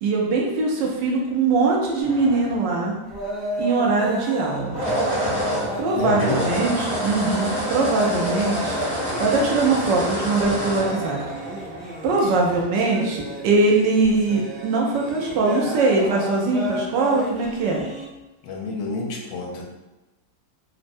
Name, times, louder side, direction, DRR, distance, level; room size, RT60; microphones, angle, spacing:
voice 1, 0.0-3.0 3.6-4.8 5.8-8.8 9.2-11.2 12.0-17.8, right 3 dB, 75° right, -1 dB, 1.2 m, -21 dB
sound 1, 2.0-3.0 4.6-12.0, equal, 15° right, 0.8 m, -28 dB
sound 2, 3.1-18.1, equal, 45° right, 1.2 m, -33 dB
voice 2, 6.0-6.6 12.2-12.5 18.4-19.6, left 2 dB, 85° left, 0 dB, 1.3 m, -28 dB
3.5 x 2.0 x 2.5 m, 1.0 s
omnidirectional pair, 2.0 m